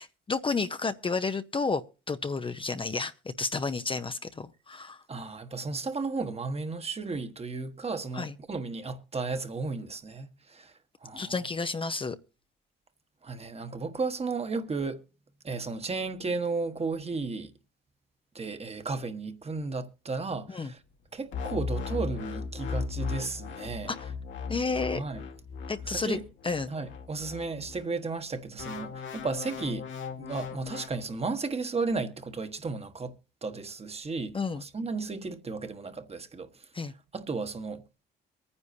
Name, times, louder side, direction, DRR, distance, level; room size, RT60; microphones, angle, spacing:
voice 1, 0.0-1.8 2.1-5.0 8.1-8.3 11.1-12.2 20.5-20.7 23.9-24.1 24.5-25.0 25.7-26.2 26.4-26.7 34.3-34.6 36.7-36.9, left 4 dB, 25° left, 0.7 m, -31 dB
voice 2, 5.1-11.4 13.2-15.0 15.4-17.5 18.3-20.8 21.1-23.9 24.9-25.2 25.9-26.2 26.7-29.9 30.2-33.1 33.4-36.7 37.1-37.8, right 4 dB, 30° right, 1.3 m, -34 dB
sound 1, 21.3-27.9 28.6-30.9, left 5 dB, 70° left, 2.0 m, -37 dB
23.0 x 9.8 x 2.7 m
cardioid pair, 90°, 20 cm